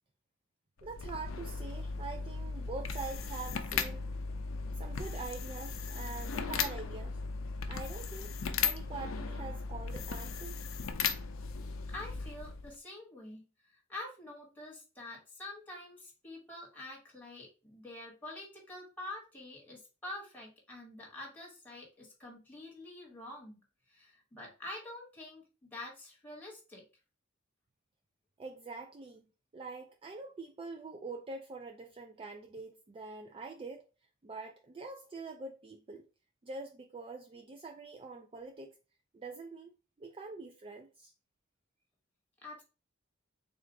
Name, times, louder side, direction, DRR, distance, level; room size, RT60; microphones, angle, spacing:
sound 1, 0.8-12.8, left 5 dB, 75° left, 0.5 m, -37 dB
voice 1, 0.8-4.0 4.8-7.2 7.7-10.7 28.4-29.2 29.5-33.8 34.2-36.1 36.4-38.7 39.1-39.7 40.0-41.1, right 4 dB, 25° right, 0.3 m, -44 dB
voice 2, 11.9-23.6 23.9-26.8 42.4-42.6, left 2 dB, 10° left, 1.5 m, -47 dB
3.7 x 2.4 x 4.5 m
head